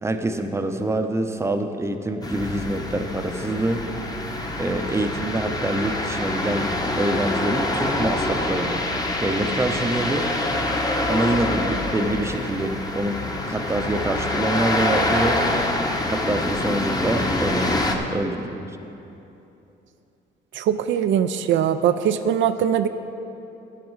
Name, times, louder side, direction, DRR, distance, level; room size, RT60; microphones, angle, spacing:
voice 1, 0.0-3.8 4.6-6.7 7.0-8.8 9.2-10.3 11.1-13.2 13.5-15.4 16.1-17.8 18.1-18.6, right 1 dB, 15° right, 6 dB, 0.7 m, -25 dB
sound 1, 2.2-18.0, left 1 dB, 20° left, 1.0 m, -25 dB
voice 2, 20.5-22.9, right 9 dB, 70° right, 9 dB, 0.4 m, -21 dB
10.0 x 9.5 x 4.6 m, 2.9 s
cardioid pair, 90°, 20 cm